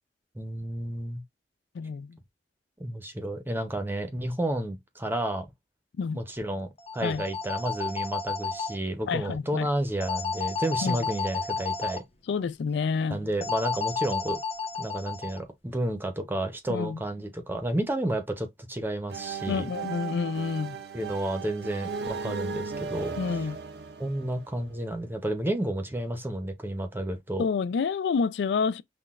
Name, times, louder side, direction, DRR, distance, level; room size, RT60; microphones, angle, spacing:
voice 1, 0.3-1.2 2.8-5.4 6.1-12.0 13.1-14.4 14.8-19.7 20.9-23.2 24.0-27.4, right 1 dB, 10° right, 0.6 m, -31 dB
voice 2, 1.7-2.2 6.0-6.2 7.0-7.2 9.1-9.7 10.8-11.1 12.3-13.2 16.7-17.0 19.5-20.8 23.2-23.6 27.4-28.8, left 5 dB, 75° left, 0.3 m, -28 dB
sound 1, 6.8-8.7 10.0-12.0 13.4-15.4, left 5 dB, 35° left, 0.7 m, -32 dB
sound 2, 19.1-24.8, right 5 dB, 65° right, 0.5 m, -36 dB
5.8 x 2.2 x 2.4 m
head